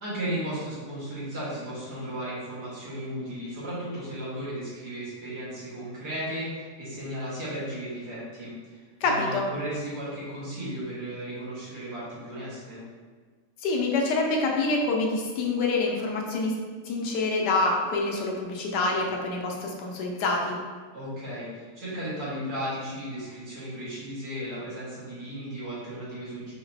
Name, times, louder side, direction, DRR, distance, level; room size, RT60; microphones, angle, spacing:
voice 1, 0.0-12.8 20.9-26.5, equal, 70° right, -10 dB, 2.2 m, -35 dB
voice 2, 9.0-9.5 13.6-16.5 16.9-20.6, left 3 dB, 85° left, 0 dB, 1.3 m, -26 dB
5.1 x 2.9 x 2.7 m, 1.5 s
omnidirectional pair, 1.8 m